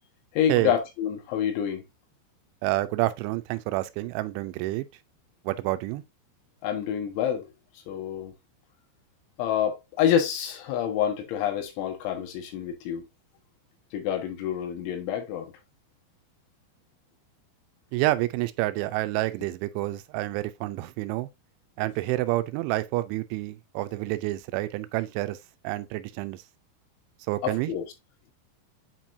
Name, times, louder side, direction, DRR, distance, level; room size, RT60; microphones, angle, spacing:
voice 1, 0.3-1.8 6.6-7.5 7.9-8.3 9.4-13.1 13.9-15.5 27.4-27.9, left 9 dB, 85° left, 3.7 m, -27 dB
voice 2, 2.6-4.9 5.5-6.0 17.9-21.3 21.8-25.4 25.6-26.4 27.3-27.7, right 18 dB, 85° right, 2.9 m, -28 dB
8.2 x 4.5 x 2.6 m
omnidirectional pair, 5.3 m